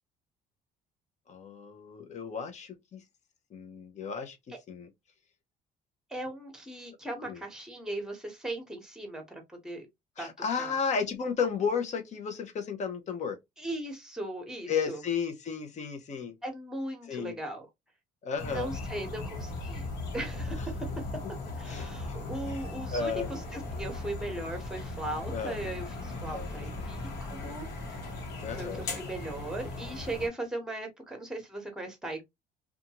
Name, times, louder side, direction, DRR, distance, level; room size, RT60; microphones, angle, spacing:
voice 1, 1.3-3.0 3.5-4.4 4.7-4.9 7.2-7.4 10.2-13.4 14.7-16.3 17.1-17.4 18.2-18.7 21.7-22.6 22.9-23.3 25.3-25.6 26.3-26.5 28.4-28.8, left 6 dB, 45° left, 0.7 m, -33 dB
voice 2, 6.1-9.9 10.2-10.3 10.6-10.8 13.6-15.0 16.4-17.7 18.4-20.8 21.6-32.2, right 1 dB, 5° right, 1.1 m, -38 dB
sound 1, 18.4-30.3, left 2 dB, 75° left, 1.1 m, -38 dB
2.5 x 2.3 x 2.8 m
cardioid pair, 110°, 17 cm